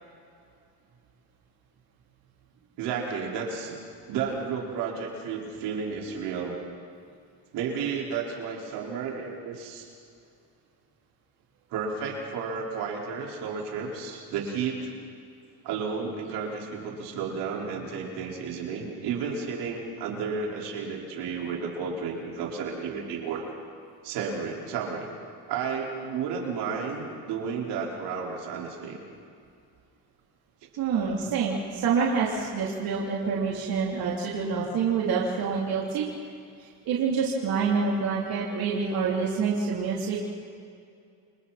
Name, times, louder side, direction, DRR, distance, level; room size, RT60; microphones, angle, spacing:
voice 1, 2.8-3.8 4.1-6.6 7.5-9.9 11.7-14.9 15.6-23.4 24.0-25.1 25.5-29.0, right 5 dB, 80° right, -2 dB, 5.1 m, -32 dB
voice 2, 30.8-36.1 36.6-40.3, right 5 dB, 60° right, -4 dB, 3.6 m, -27 dB
30.0 x 27.5 x 4.4 m, 2.4 s
cardioid pair, 120°, 40 cm